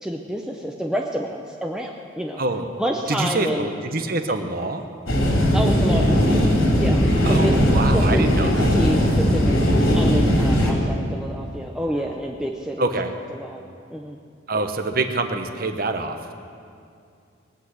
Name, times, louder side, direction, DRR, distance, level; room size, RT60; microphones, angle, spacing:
voice 1, 0.0-2.4 2.8-3.7 5.5-12.9 13.4-13.6 13.9-14.2 14.5-14.7, equal, 5° right, 1 dB, 0.6 m, -29 dB
voice 2, 2.4-2.8 3.1-4.8 7.2-8.7 12.8-13.1 14.5-16.3, right 2 dB, 45° right, 7 dB, 0.9 m, -25 dB
sound 1, 5.1-10.7, equal, 85° left, 3.2 m, -18 dB
21.5 x 8.2 x 6.5 m, 2.4 s
head